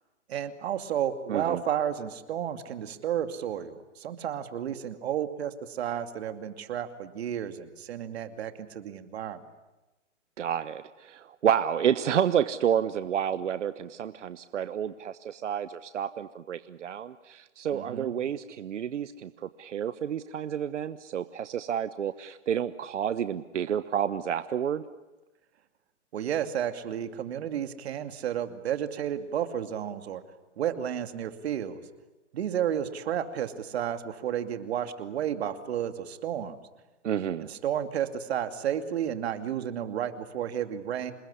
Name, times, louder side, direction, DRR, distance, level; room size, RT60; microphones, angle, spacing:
voice 1, 0.3-9.4 17.7-18.1 26.1-30.2 30.6-31.8 32.3-36.6 37.5-41.1, right 9 dB, 60° right, 9 dB, 2.6 m, -32 dB
voice 2, 1.3-1.6 10.4-24.8 37.0-37.5, right 9 dB, 75° right, 13 dB, 1.1 m, -30 dB
27.5 x 20.5 x 9.9 m, 1.1 s
hypercardioid pair, 140°, 36 cm